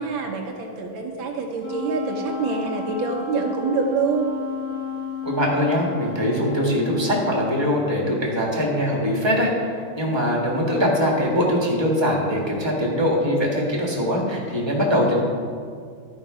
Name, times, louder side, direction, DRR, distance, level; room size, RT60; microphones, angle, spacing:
voice 1, 0.0-4.3, right 4 dB, 75° right, 1 dB, 1.8 m, -26 dB
Wind instrument woodwind instrument, 1.6-7.7, left 4 dB, 80° left, 3.5 m, -32 dB
voice 2, 5.2-15.2, equal, 15° right, -3 dB, 1.4 m, -22 dB
12.0 x 5.2 x 4.9 m, 2.1 s
omnidirectional pair, 2.3 m